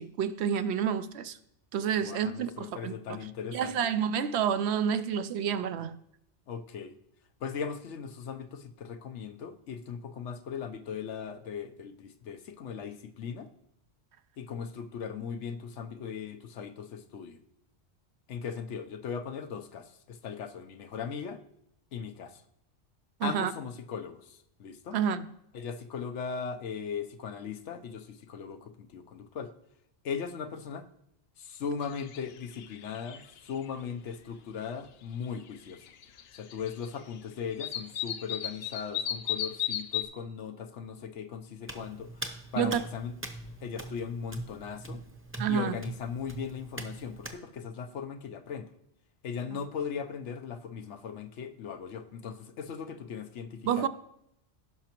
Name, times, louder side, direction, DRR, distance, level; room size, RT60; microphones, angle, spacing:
voice 1, 0.0-1.4 1.7-2.9 3.5-6.0 23.2-23.5 24.9-25.3 42.6-42.8 45.4-45.8 49.5-49.6 53.7-53.9, right 8 dB, 70° right, 0.8 m, -29 dB
voice 2, 2.0-3.9 6.5-7.0 7.4-13.5 14.4-17.4 18.3-21.4 21.9-22.4 23.2-25.0 25.5-29.5 30.0-30.9 31.4-35.9 36.3-43.1 43.6-45.0 45.5-48.7 49.2-53.9, left 6 dB, 85° left, 1.0 m, -38 dB
sound 1, 31.8-32.3 32.5-33.7 35.2-35.3 35.9-36.9 37.1-37.2 37.6-40.0, left 10 dB, 65° left, 0.8 m, -34 dB
Hands, 41.6-47.4, right 2 dB, 15° right, 0.7 m, -42 dB
15.5 x 5.8 x 2.9 m
omnidirectional pair, 1.2 m